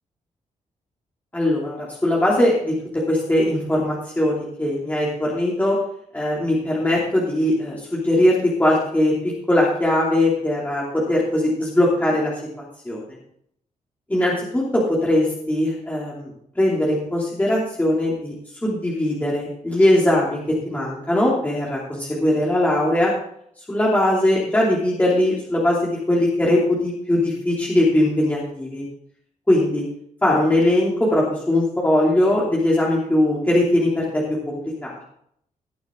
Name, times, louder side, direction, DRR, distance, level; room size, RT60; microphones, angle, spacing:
voice 1, 1.3-5.8 6.1-12.3 12.8-13.0 14.1-18.3 18.6-23.1 23.7-28.8 29.5-29.8 30.2-34.9, left 1 dB, 10° left, -5 dB, 3.1 m, -20 dB
19.0 x 6.9 x 3.9 m, 0.67 s
cardioid pair, 110°, 13 cm